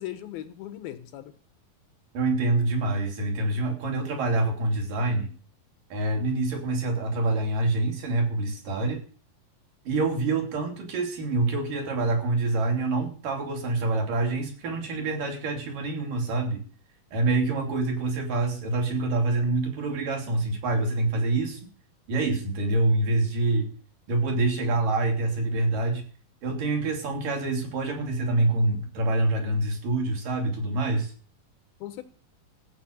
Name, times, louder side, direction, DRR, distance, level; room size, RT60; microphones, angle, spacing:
voice 1, 0.0-1.3 31.8-32.0, left 13 dB, 80° left, 9 dB, 3.1 m, -38 dB
voice 2, 2.1-5.3 5.9-9.0 9.9-16.6 17.1-21.6 22.1-23.7 24.1-26.0 26.4-31.1, right 2 dB, 60° right, 3 dB, 4.7 m, -26 dB
14.5 x 8.6 x 7.2 m, 0.41 s
omnidirectional pair, 4.3 m